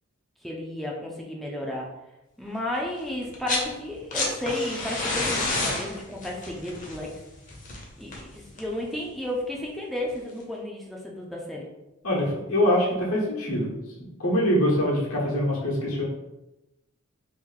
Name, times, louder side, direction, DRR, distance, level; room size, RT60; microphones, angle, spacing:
voice 1, 0.4-1.9 2.4-7.1 8.0-11.7, left 1 dB, ahead, -3 dB, 0.4 m, -33 dB
sound 1, 3.2-3.7 4.0-8.8 10.1-10.2, left 2 dB, 40° left, 0.7 m, -30 dB
voice 2, 12.0-13.7 14.2-16.0, equal, 80° left, -3 dB, 1.1 m, -24 dB
2.9 x 2.6 x 3.7 m, 0.95 s
head